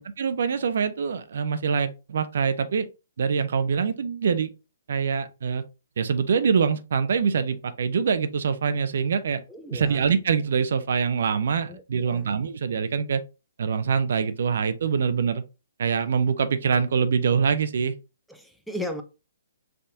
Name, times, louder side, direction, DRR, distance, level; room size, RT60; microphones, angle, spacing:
voice 1, 0.2-2.9 3.2-4.5 4.9-5.6 6.0-9.4 9.7-13.2 13.6-15.4 15.8-17.9, right 6 dB, 55° right, 0.4 m, -24 dB
voice 2, 9.5-10.0 11.7-12.3 18.3-19.0, left 1 dB, ahead, 0.5 m, -36 dB
5.5 x 2.5 x 2.6 m
figure-of-eight pair, 125°, 0 cm